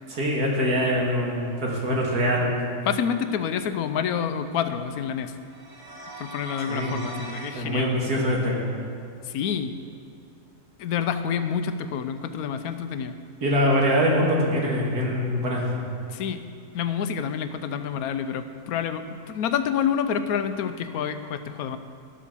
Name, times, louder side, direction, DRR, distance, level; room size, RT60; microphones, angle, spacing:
voice 1, 0.1-2.7 6.7-7.0 7.5-8.6 13.4-15.7, equal, 80° right, -2 dB, 2.5 m, -23 dB
voice 2, 2.9-5.3 6.2-7.9 9.2-9.7 10.8-13.1 16.1-16.4 16.7-21.8, left 8 dB, 75° left, 10 dB, 1.0 m, -28 dB
sound 1, 5.5-7.6, right 1 dB, 50° right, 1.7 m, -39 dB
11.5 x 7.6 x 6.8 m, 2.5 s
omnidirectional pair, 1.7 m